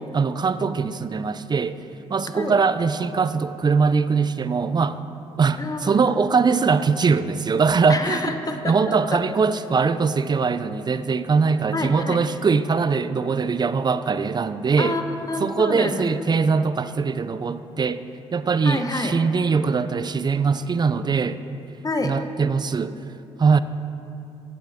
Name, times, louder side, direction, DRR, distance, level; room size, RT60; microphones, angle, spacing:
voice 1, 0.0-1.8 2.1-5.0 5.4-8.2 8.6-15.0 15.4-18.0 18.3-21.4 22.0-23.0 23.4-23.6, right 5 dB, 35° right, 13 dB, 0.5 m, -21 dB
voice 2, 5.6-6.1 7.9-9.2 11.7-12.2 14.8-16.4 18.6-19.1 21.8-22.1, left 3 dB, 30° left, 5 dB, 1.2 m, -28 dB
15.5 x 8.5 x 3.6 m, 2.8 s
supercardioid pair, 60°, 13 cm